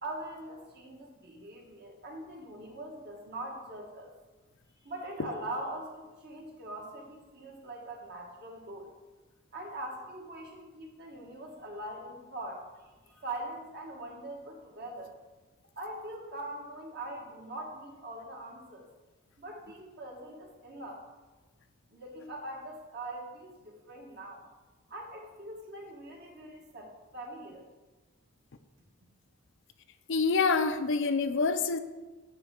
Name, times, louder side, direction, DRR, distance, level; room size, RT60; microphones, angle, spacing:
voice 1, 0.0-4.1 4.8-8.9 9.5-15.1 15.8-18.9 19.4-21.0 21.9-24.4 24.9-27.7, right 1 dB, 55° right, 0 dB, 1.8 m, -42 dB
voice 2, 30.1-31.8, left 4 dB, 65° left, 10 dB, 0.5 m, -26 dB
10.0 x 3.5 x 6.4 m, 1.2 s
head